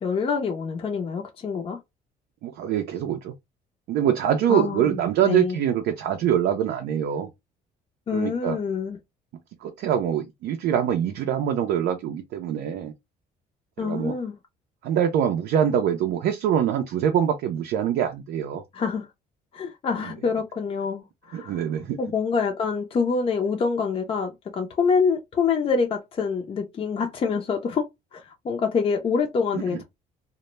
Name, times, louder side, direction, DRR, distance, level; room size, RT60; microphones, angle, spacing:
voice 1, 0.0-1.8 4.5-5.6 8.1-9.0 13.8-14.3 18.7-19.1 19.5-21.5 22.0-29.8, left 5 dB, 35° left, 0.5 m, -26 dB
voice 2, 2.4-3.3 3.9-7.3 8.1-8.6 9.6-12.9 13.8-14.2 14.8-18.6 21.3-22.0 29.7-29.8, right 9 dB, 75° right, 0.4 m, -24 dB
2.1 x 2.1 x 3.0 m
cardioid pair, 110°, 17 cm